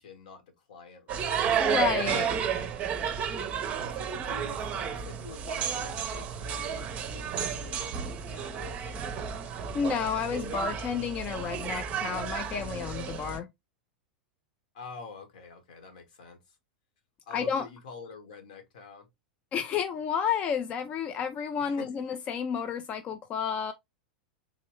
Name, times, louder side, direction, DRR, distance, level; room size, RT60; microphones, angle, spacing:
voice 1, 0.0-1.4 2.1-2.4 3.8-9.2 14.7-16.6 17.3-19.1 21.6-21.9, left 5 dB, 60° left, 1.2 m, -47 dB
sound 1, 1.1-13.4, right 7 dB, 30° right, 0.6 m, -32 dB
voice 2, 1.6-2.3 9.7-13.5 17.3-17.7 19.5-23.7, left 7 dB, 30° left, 0.4 m, -31 dB
3.8 x 3.0 x 2.9 m
figure-of-eight pair, 90°, 5 cm